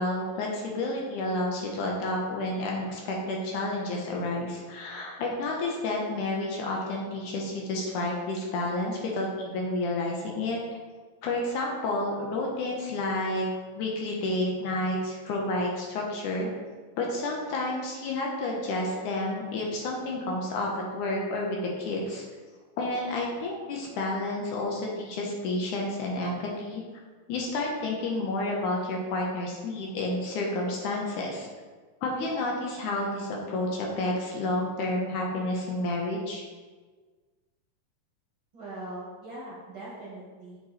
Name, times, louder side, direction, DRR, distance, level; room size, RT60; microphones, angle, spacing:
voice 1, 0.0-10.6 11.2-13.5 13.8-16.5 17.0-22.2 22.8-26.8 27.3-31.5 32.0-36.4, left 2 dB, 70° left, -1 dB, 2.3 m, -30 dB
voice 2, 38.5-40.6, right 1 dB, 50° right, -7 dB, 1.8 m, -41 dB
7.5 x 4.3 x 4.2 m, 1.4 s
omnidirectional pair, 3.8 m